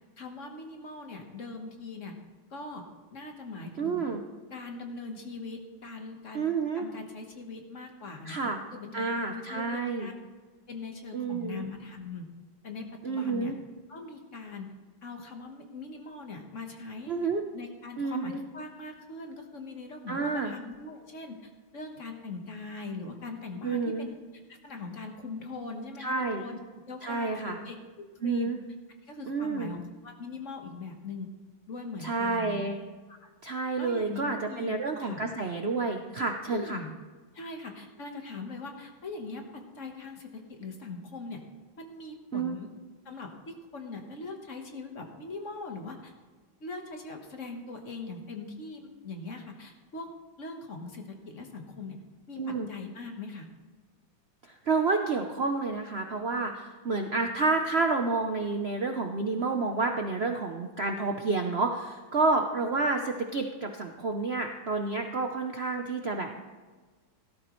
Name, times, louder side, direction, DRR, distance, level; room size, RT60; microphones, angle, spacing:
voice 1, 0.2-2.2 2.5-2.8 3.1-4.1 4.5-6.5 6.7-8.4 8.7-10.1 10.7-12.3 12.6-13.5 13.9-14.7 15.0-17.1 17.5-24.1 24.5-26.6 26.9-28.5 29.0-31.3 31.7-32.6 33.2-33.3 33.8-35.3 36.5-36.9 37.3-41.4 41.8-42.7 43.0-46.1 46.6-50.1 50.4-52.0 52.3-53.5, left 3 dB, 40° left, 3 dB, 1.5 m, -41 dB
voice 2, 3.8-4.2 6.3-6.9 8.2-8.6 8.9-10.1 11.1-11.7 13.0-13.6 17.1-17.4 18.0-18.4 20.1-20.5 23.6-24.1 26.0-26.5 27.0-27.6 28.2-28.6 29.3-29.7 32.0-32.8 33.4-36.8 42.3-42.6 52.3-52.7 54.5-66.3, right 3 dB, 85° right, 4 dB, 0.5 m, -29 dB
16.5 x 13.5 x 3.2 m, 1.4 s
omnidirectional pair, 2.3 m